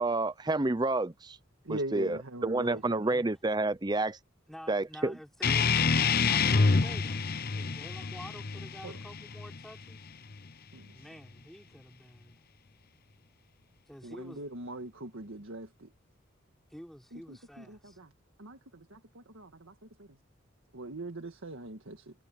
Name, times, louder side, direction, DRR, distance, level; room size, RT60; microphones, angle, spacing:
voice 1, 0.0-1.4 1.7-4.2 4.7-5.1, right 2 dB, 20° right, 0.6 m, -29 dB
voice 2, 1.6-3.0 8.8-9.0 10.7-10.9 14.0-15.9 17.1-18.1 18.4-20.1 20.7-22.1, right 1 dB, 85° right, 1.7 m, -42 dB
voice 3, 4.5-5.7 6.2-10.0 10.9-12.4 13.9-14.5 16.7-18.0, equal, ahead, 3.8 m, -49 dB
sound 1, 5.4-10.5, left 4 dB, 50° left, 0.8 m, -28 dB
head